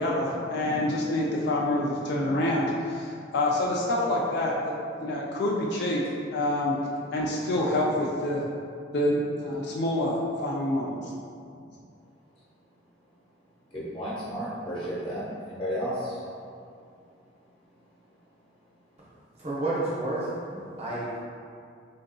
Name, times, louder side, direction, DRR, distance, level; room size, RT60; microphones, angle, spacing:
voice 1, 0.0-6.8 7.1-8.4 8.9-11.1, left 1 dB, 55° left, -3 dB, 0.3 m, -27 dB
voice 2, 13.7-16.2, equal, 30° left, -9 dB, 1.0 m, -32 dB
voice 3, 19.4-20.3 20.5-21.2, right 2 dB, 35° right, -7 dB, 0.7 m, -30 dB
3.7 x 2.5 x 2.2 m, 2.4 s
head